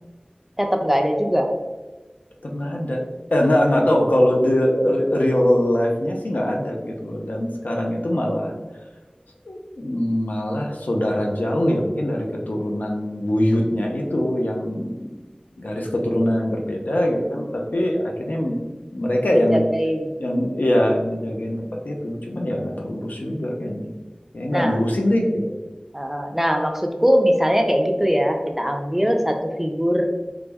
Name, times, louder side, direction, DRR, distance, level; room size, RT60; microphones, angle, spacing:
voice 1, 0.6-1.5 19.3-20.1 24.5-24.8 25.9-30.1, equal, 10° right, 3 dB, 0.4 m, -21 dB
voice 2, 2.4-3.0 3.3-8.5 9.5-15.2 15.6-18.6 18.9-19.7 20.2-23.9 24.3-25.5, left 1 dB, 90° left, 0 dB, 0.5 m, -22 dB
3.4 x 2.0 x 3.4 m, 1.2 s
wide cardioid pair, 40°, 3 cm